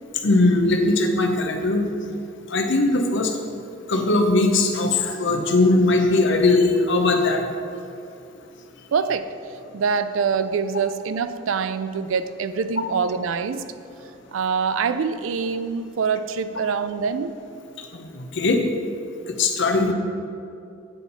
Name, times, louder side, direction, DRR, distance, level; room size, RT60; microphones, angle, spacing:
voice 1, 0.2-1.9 2.5-3.3 3.9-7.4 17.9-18.6 19.3-19.9, left 2 dB, 60° left, 4 dB, 0.8 m, -20 dB
voice 2, 8.9-9.3 9.7-13.6 14.3-17.4, right 5 dB, 70° right, 12 dB, 0.4 m, -25 dB
9.2 x 4.3 x 5.5 m, 2.6 s
head